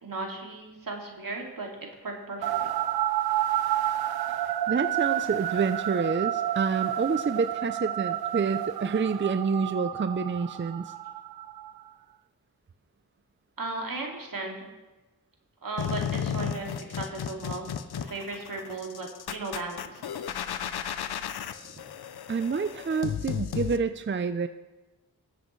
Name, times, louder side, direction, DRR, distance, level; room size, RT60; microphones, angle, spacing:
voice 1, 0.0-1.7 2.0-2.7 13.6-14.7 15.6-20.0, right 3 dB, 60° right, 0 dB, 2.6 m, -36 dB
sound 1, 2.4-11.9, right 12 dB, 75° right, 0.5 m, -30 dB
voice 2, 4.3-10.9 22.3-24.5, right 5 dB, 30° right, 10 dB, 0.5 m, -28 dB
sound 2, 15.8-23.8, left 8 dB, 85° left, 0.7 m, -34 dB
19.5 x 7.8 x 3.2 m, 1.1 s
cardioid pair, 50°, 37 cm